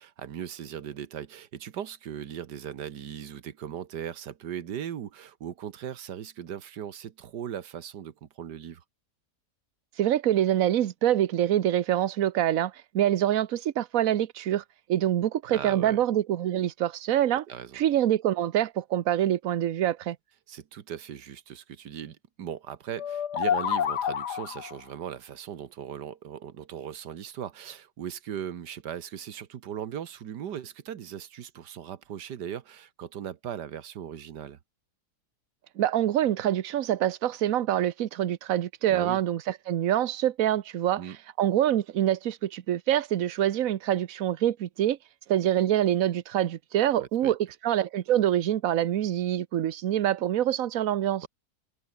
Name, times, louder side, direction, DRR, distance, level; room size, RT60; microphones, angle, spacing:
voice 1, 0.0-8.8 15.5-16.0 17.5-17.8 20.5-34.6 38.9-39.2 41.0-41.2 47.0-47.4 51.2-51.3, right 9 dB, 85° right, 1.8 m, -38 dB
voice 2, 10.0-14.6 14.9-17.4 17.7-20.2 35.8-39.4 39.7-41.0 41.4-45.0 45.3-47.4 47.6-51.2, right 11 dB, 60° right, 1.2 m, -25 dB
sound 1, 23.0-24.8, left 8 dB, 85° left, 1.9 m, -28 dB
omnidirectional pair, 1.8 m